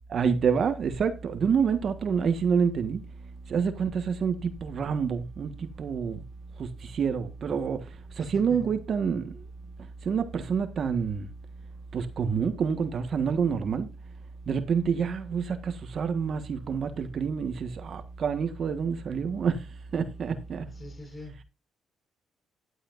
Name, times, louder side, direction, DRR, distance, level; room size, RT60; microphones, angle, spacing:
voice 1, 0.1-3.0 3.5-6.2 6.6-7.8 8.1-9.4 10.0-11.3 11.9-13.9 14.5-20.7, right 6 dB, 55° right, 1.4 m, -28 dB
voice 2, 8.2-8.7 20.7-21.5, left 2 dB, 25° left, 6.2 m, -43 dB
12.0 x 11.0 x 2.6 m
cardioid pair, 90°, 0 cm